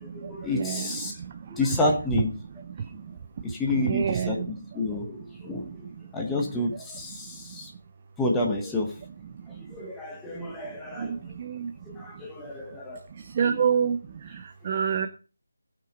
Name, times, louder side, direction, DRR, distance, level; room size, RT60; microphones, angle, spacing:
voice 1, 0.0-1.1 1.5-2.3 3.4-5.8 6.1-7.7 8.2-8.9 9.7-11.2 11.9-13.0 13.4-13.6, left 2 dB, 5° left, 0 dB, 1.1 m, -29 dB
voice 2, 0.5-1.0 1.7-1.8 3.7-4.5 11.0-11.7 13.4-14.0 14.6-15.1, right 7 dB, 20° right, 7 dB, 0.6 m, -26 dB
18.0 x 5.9 x 5.2 m, 0.35 s
figure-of-eight pair, 175°, 0 cm